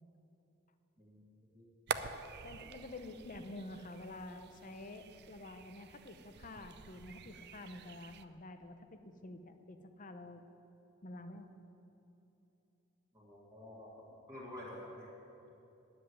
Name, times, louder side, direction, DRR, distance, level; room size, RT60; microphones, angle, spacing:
sound 1, 1.9-8.2, right 6 dB, 55° right, 0.5 m, -46 dB
voice 1, 2.4-10.4 11.0-11.5, left 2 dB, 40° left, 8 dB, 0.8 m, -49 dB
voice 2, 13.1-13.9 14.3-15.1, left 1 dB, 15° right, -7 dB, 2.1 m, -49 dB
9.9 x 7.8 x 9.6 m, 2.9 s
head